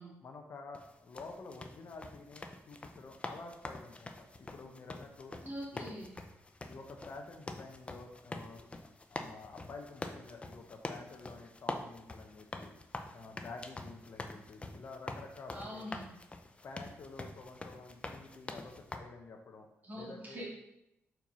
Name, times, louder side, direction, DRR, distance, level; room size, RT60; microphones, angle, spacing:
voice 1, 0.2-5.3 5.7-5.9 6.7-8.7 9.1-12.7 13.1-15.9 16.6-19.7 19.9-20.4, left 3 dB, 55° left, 4 dB, 0.8 m, -49 dB
sound 1, 0.7-19.0, left 2 dB, 20° left, 0.6 m, -45 dB
voice 2, 5.4-6.1 15.5-16.1 19.8-20.5, equal, 35° right, -4 dB, 2.6 m, -43 dB
4.5 x 4.5 x 5.5 m, 0.84 s
cardioid pair, 90°, 5 cm